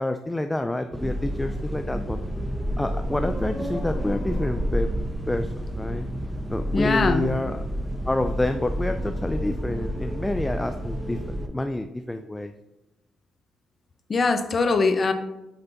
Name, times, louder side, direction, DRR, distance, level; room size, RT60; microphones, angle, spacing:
voice 1, 0.0-2.2 2.8-4.9 5.3-6.1 6.5-7.6 8.1-11.2 11.5-12.5, left 1 dB, 10° left, 8 dB, 0.3 m, -28 dB
sound 1, 0.9-11.5, equal, 5° right, 0.8 m, -29 dB
voice 2, 6.7-7.3 14.1-15.1, left 4 dB, 40° left, 8 dB, 0.7 m, -22 dB
8.0 x 3.3 x 4.0 m, 0.96 s
cardioid pair, 90°, 0 cm